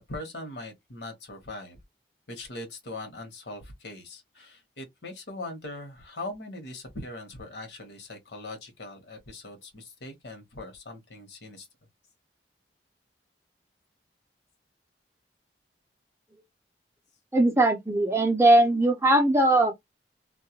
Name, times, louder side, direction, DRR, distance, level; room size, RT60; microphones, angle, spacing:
voice 1, 0.1-1.8 2.3-11.7, left 2 dB, 70° left, 0.9 m, -41 dB
voice 2, 17.3-19.7, right 1 dB, 15° right, 0.4 m, -20 dB
2.2 x 2.1 x 2.7 m
head